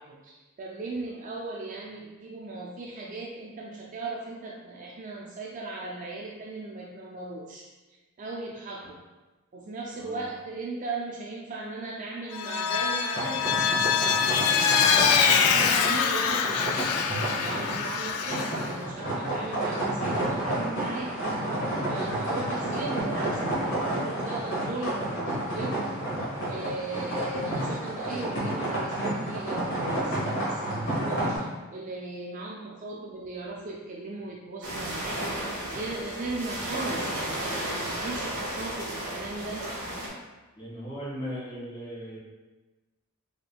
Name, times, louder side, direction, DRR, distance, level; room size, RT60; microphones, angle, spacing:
voice 1, 0.0-7.7 8.2-9.0 9.5-13.9 14.2-21.2 21.9-25.9 26.4-35.2 35.6-39.6, right 2 dB, 35° right, -2 dB, 0.3 m, -38 dB
Vehicle, 12.3-18.7, left 6 dB, 85° left, 0.3 m, -24 dB
sound 1, 13.1-31.4, right 1 dB, 55° left, 1.2 m, -30 dB
sound 2, 34.6-40.1, right 1 dB, 75° right, 1.1 m, -33 dB
voice 2, 40.6-42.2, equal, 20° left, -9 dB, 1.4 m, -38 dB
3.8 x 3.5 x 2.3 m, 1.2 s
head